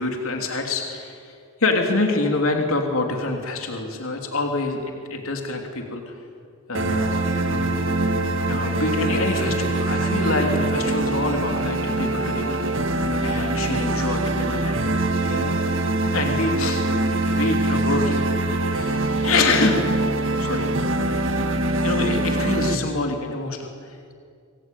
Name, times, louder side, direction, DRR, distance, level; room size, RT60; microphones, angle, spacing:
voice 1, 0.0-1.3 1.6-6.1 6.7-7.9 8.5-12.6 13.2-14.8 15.3-15.6 16.1-16.8 17.3-19.8 20.3-20.7 21.8-24.1, left 3 dB, 80° left, 3 dB, 3.0 m, -26 dB
sound 1, 6.7-22.8, right 2 dB, 65° right, 1.8 m, -23 dB
26.5 x 21.0 x 9.3 m, 2.3 s
head